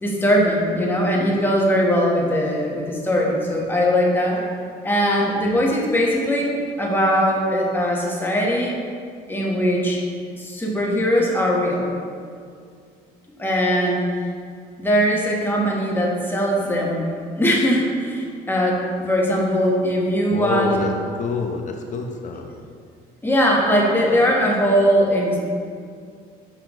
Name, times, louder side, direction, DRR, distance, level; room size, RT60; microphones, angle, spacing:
voice 1, 0.0-4.4 4.8-6.5 6.8-8.8 9.3-10.0 10.4-11.9 13.4-14.0 14.8-17.1 17.4-20.8 23.2-25.4, equal, 10° left, -3 dB, 1.2 m, -20 dB
voice 2, 20.3-22.5, left 4 dB, 45° left, 3 dB, 0.8 m, -26 dB
6.8 x 5.7 x 3.0 m, 2.2 s
cardioid pair, 110°, 17 cm